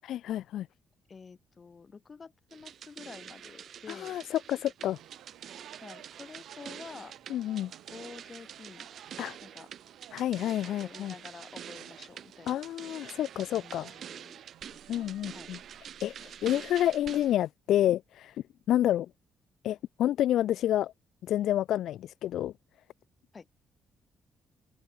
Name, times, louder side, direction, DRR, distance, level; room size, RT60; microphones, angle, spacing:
voice 1, 0.1-0.7 3.9-5.0 7.3-7.7 9.2-9.4 10.1-11.1 12.5-13.9 14.9-15.6 16.0-18.4 18.7-19.1 19.6-20.9 21.2-22.5, left 12 dB, 80° left, 0.7 m, -29 dB
voice 2, 1.1-4.2 5.8-7.1 7.9-8.9 9.4-9.7 10.5-12.6 13.5-14.4 14.7-15.5 23.3-23.5, left 5 dB, 35° left, 5.6 m, -49 dB
sound 1, 2.5-17.3, right 9 dB, 60° right, 4.1 m, -47 dB
sound 2, 4.8-15.8, right 13 dB, 85° right, 4.8 m, -55 dB
cardioid pair, 90°, 0 cm